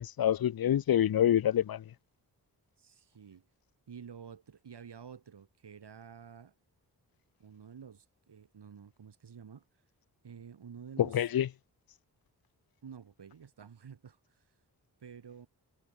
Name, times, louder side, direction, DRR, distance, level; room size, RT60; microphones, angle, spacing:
voice 1, 0.0-1.8 11.1-11.5, left 10 dB, 60° left, 0.7 m, -27 dB
voice 2, 2.8-3.5 3.9-6.5 7.4-9.6 10.2-11.3 12.8-14.5 15.0-15.5, right 7 dB, 80° right, 5.7 m, -50 dB
cardioid pair, 55°, 41 cm